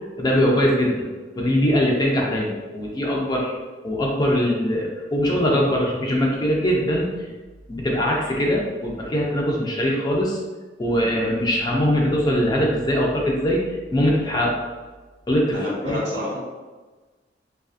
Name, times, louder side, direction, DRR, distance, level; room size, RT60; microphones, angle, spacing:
voice 1, 0.2-1.1 1.4-3.5 3.8-7.3 7.7-10.4 10.8-14.6 15.3-15.6 15.8-16.0, equal, 25° left, -2 dB, 0.4 m, -21 dB
voice 2, 15.5-16.4, left 1 dB, 70° right, -5 dB, 1.0 m, -29 dB
2.5 x 2.3 x 2.4 m, 1.3 s
head